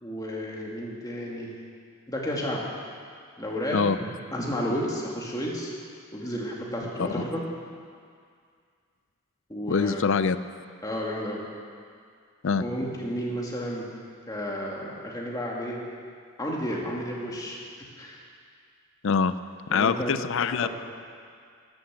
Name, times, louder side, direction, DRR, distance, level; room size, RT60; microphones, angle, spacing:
voice 1, 0.0-1.5 2.1-2.7 3.4-3.9 4.3-5.7 6.1-7.4 9.5-10.0 10.8-11.4 12.6-13.9 14.3-15.8 16.4-17.6 18.0-18.2 19.7-20.1 20.4-20.7, equal, 15° left, -3 dB, 2.1 m, -32 dB
voice 2, 9.7-10.4 12.4-12.6 19.0-19.3 19.7-20.7, left 5 dB, 60° left, 13 dB, 0.4 m, -24 dB
13.0 x 11.5 x 7.5 m, 2.1 s
head